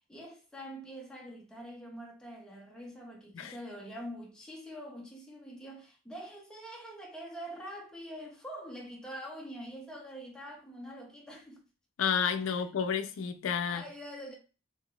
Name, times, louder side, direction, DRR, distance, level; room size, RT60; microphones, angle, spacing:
voice 1, 0.1-11.6 12.4-12.7 13.6-14.4, equal, 5° left, 0.6 m, -45 dB
voice 2, 12.0-13.8, left 7 dB, 90° left, 0.4 m, -31 dB
3.5 x 2.9 x 2.3 m
head